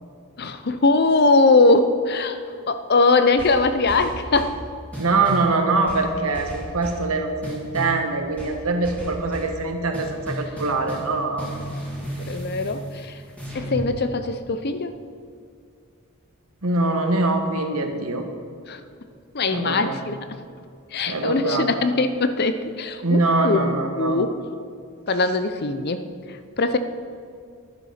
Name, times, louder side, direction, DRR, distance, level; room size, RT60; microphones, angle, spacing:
voice 1, 0.4-2.4 2.7-4.6 12.2-13.2 13.5-14.9 18.7-18.8 19.3-20.2 20.9-23.6 24.0-24.3 25.1-26.1 26.6-26.8, left 3 dB, 45° left, 10 dB, 0.7 m, -21 dB
sound 1, 3.4-4.6 4.9-5.5 5.9-7.1 7.4-8.0 8.4-9.6 9.9-11.1 11.4-13.9, right 1 dB, 5° left, 2.6 m, -34 dB
voice 2, 5.0-11.5 16.6-18.2 19.5-20.0 21.1-21.7 23.0-24.2, right 3 dB, 75° right, 5 dB, 1.4 m, -23 dB
11.5 x 10.5 x 5.7 m, 2.3 s
head